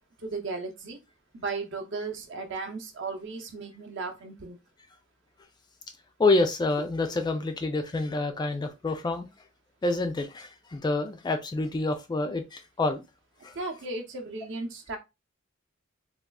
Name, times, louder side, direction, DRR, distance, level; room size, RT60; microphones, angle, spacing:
voice 1, 0.2-1.0 1.3-4.6 13.6-15.0, right 3 dB, 60° right, 0.7 m, -35 dB
voice 2, 6.2-9.3 9.8-13.0 13.4-13.6, left 2 dB, 20° left, 0.3 m, -27 dB
3.5 x 2.3 x 2.2 m
head